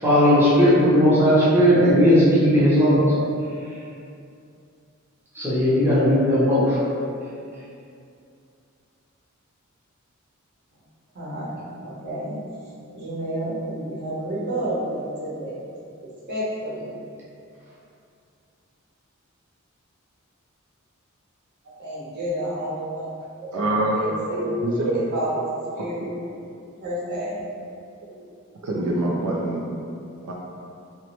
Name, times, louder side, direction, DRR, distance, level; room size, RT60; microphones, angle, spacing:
voice 1, 0.0-3.0 5.4-6.8, equal, 10° right, -10 dB, 0.6 m, -17 dB
voice 2, 11.1-12.4 12.9-15.6 16.0-17.0 21.8-23.1 23.5-24.6 24.9-25.4 25.7-26.1 26.8-27.5, right 1 dB, 50° right, -7 dB, 0.8 m, -30 dB
voice 3, 23.5-23.9 24.6-24.9 28.6-29.6 30.3-30.4, right 2 dB, 80° right, -2 dB, 0.3 m, -24 dB
2.9 x 2.1 x 2.9 m, 2.5 s
head